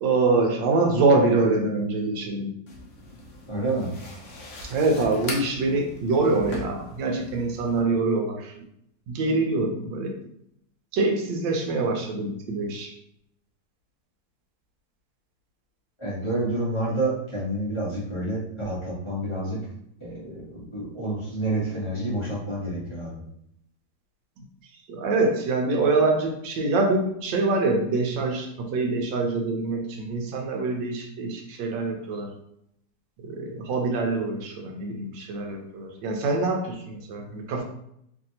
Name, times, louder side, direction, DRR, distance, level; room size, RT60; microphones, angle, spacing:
voice 1, 0.0-2.5 4.7-8.5 9.1-10.1 10.9-12.9 24.9-32.3 33.2-37.6, right 3 dB, 80° right, 2 dB, 1.3 m, -25 dB
sound 1, 2.7-7.8, left 2 dB, 60° left, 0.8 m, -40 dB
voice 2, 3.5-3.9 16.0-19.6 20.0-23.2, right 1 dB, 25° left, -7 dB, 0.7 m, -29 dB
3.3 x 2.6 x 2.7 m, 0.73 s
omnidirectional pair, 2.0 m